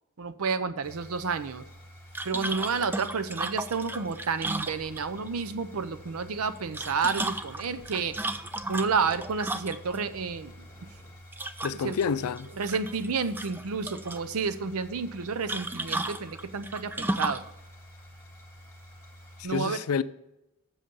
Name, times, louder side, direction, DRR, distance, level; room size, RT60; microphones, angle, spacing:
voice 1, 0.2-1.6 2.2-8.3 8.7-10.9 11.8-12.0 12.6-17.4 19.4-19.8, right 5 dB, 80° right, 0.6 m, -30 dB
sound 1, 0.8-19.4, equal, 15° left, 1.8 m, -50 dB
sound 2, 2.1-5.3 6.6-10.0 11.3-12.0 12.4-13.1 13.3-14.2 15.5-17.5, right 2 dB, 10° right, 0.3 m, -34 dB
sound 3, 4.4-11.2, left 1 dB, 30° left, 1.2 m, -54 dB
voice 2, 11.6-12.5 19.4-20.0, left 6 dB, 80° left, 0.4 m, -29 dB
7.7 x 6.7 x 5.4 m
head